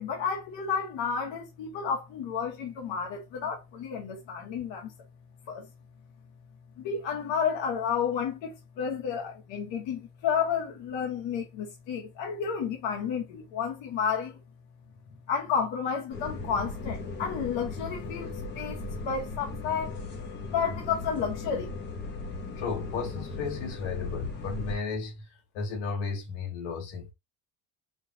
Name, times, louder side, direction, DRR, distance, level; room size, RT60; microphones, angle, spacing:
voice 1, 0.0-4.9 5.5-5.7 6.8-14.4 15.3-20.0 20.5-21.7, left 6 dB, 65° left, 1.4 m, -31 dB
sound 1, 16.1-24.8, left 3 dB, 25° left, 0.7 m, -37 dB
voice 2, 22.6-25.2 25.5-27.1, left 5 dB, 85° left, 1.5 m, -34 dB
5.0 x 2.3 x 2.7 m
cardioid pair, 175°, 48 cm